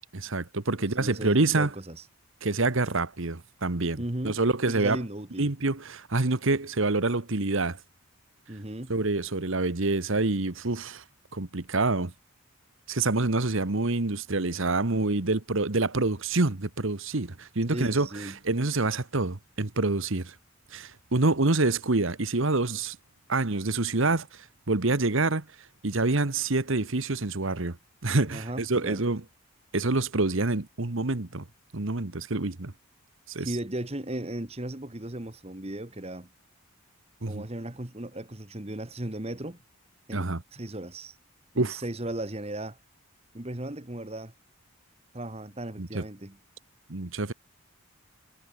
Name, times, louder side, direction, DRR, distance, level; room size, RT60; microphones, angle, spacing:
voice 1, 0.1-1.7 2.4-5.0 5.4-7.8 8.9-11.0 11.3-12.1 12.9-20.3 20.7-23.0 23.3-25.4 25.8-27.8 28.0-29.2 29.7-31.4 31.7-32.7 33.3-33.5 37.2-37.4 40.1-40.4 41.6-41.8 45.8-46.0 46.9-47.3, right 2 dB, 65° right, 1.3 m, -27 dB
voice 2, 1.0-2.0 4.0-4.4 4.7-5.5 8.5-8.9 17.7-18.4 28.3-29.0 33.4-36.3 37.2-39.6 40.1-41.2 41.5-42.8 43.3-44.3 45.1-46.4, right 1 dB, 30° right, 1.5 m, -36 dB
head